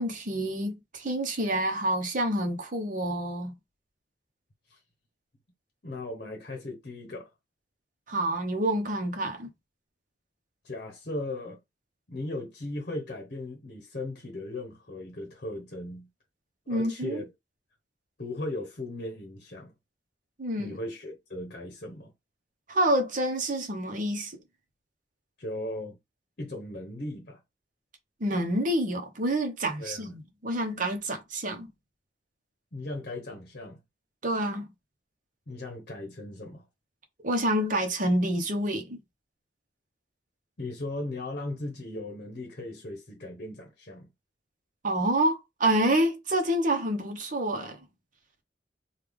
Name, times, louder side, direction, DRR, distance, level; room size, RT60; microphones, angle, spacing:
voice 1, 0.0-3.5 8.1-9.5 16.7-17.2 20.4-20.8 22.7-24.3 28.2-31.7 34.2-34.6 37.2-39.0 44.8-47.8, right 1 dB, 50° right, 0.9 m, -28 dB
voice 2, 5.8-7.3 10.6-11.6 12.1-16.1 16.7-17.3 18.2-19.7 20.6-22.1 25.4-26.0 26.4-27.4 29.8-30.1 32.7-33.8 35.5-36.6 40.6-44.1, left 2 dB, 50° left, 0.9 m, -37 dB
3.2 x 2.4 x 3.5 m
head